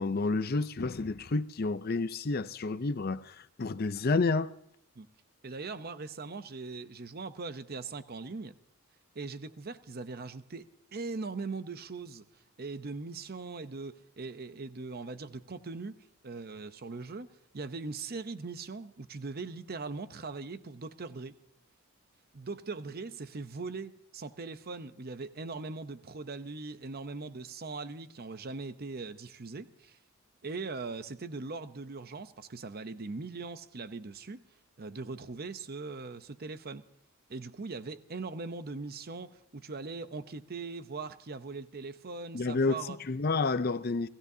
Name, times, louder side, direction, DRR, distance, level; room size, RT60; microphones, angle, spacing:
voice 1, 0.0-4.5 42.3-42.8 43.1-44.1, left 3 dB, 45° left, 0.6 m, -30 dB
voice 2, 5.4-8.5 9.1-12.2 12.6-21.3 22.3-30.0 30.4-34.4 34.8-36.8 37.3-43.0, right 3 dB, 45° right, 0.7 m, -40 dB
30.0 x 16.0 x 2.8 m
head